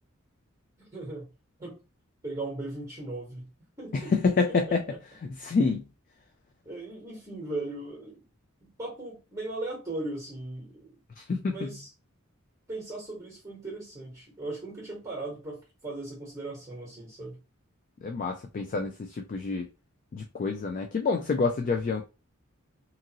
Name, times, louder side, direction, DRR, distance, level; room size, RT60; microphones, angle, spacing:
voice 1, 0.8-1.3 1.6-1.8 2.2-3.5 3.8-5.0 6.6-8.3 8.6-11.0 11.5-11.9 12.7-17.4, right 2 dB, 15° right, 1.0 m, -38 dB
voice 2, 3.9-4.8 5.2-5.8 11.2-11.7 18.0-19.7 20.1-22.0, left 4 dB, 40° left, 0.3 m, -27 dB
2.8 x 2.5 x 2.7 m
head